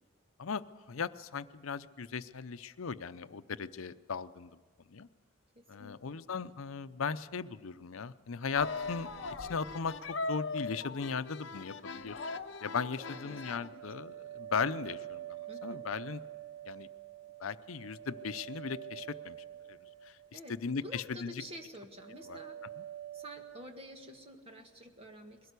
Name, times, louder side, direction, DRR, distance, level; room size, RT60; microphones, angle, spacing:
voice 1, 0.4-4.5 4.9-5.1 5.7-9.1 9.4-12.2 12.6-16.2 16.7-16.9 17.4-19.4 19.7-19.8 20.0-21.4 22.3-22.4, left 5 dB, 85° left, 12 dB, 0.6 m, -37 dB
voice 2, 5.6-6.0 13.0-13.8 15.5-15.8 20.3-20.5 20.8-22.6 23.1-25.5, equal, 30° right, 4 dB, 1.8 m, -49 dB
sound 1, 8.5-13.7, left 3 dB, 60° left, 0.9 m, -40 dB
sound 2, 12.6-20.8 21.1-21.6 21.9-23.7, right 12 dB, 70° right, 3.9 m, -47 dB
21.5 x 17.0 x 8.2 m, 1.4 s
head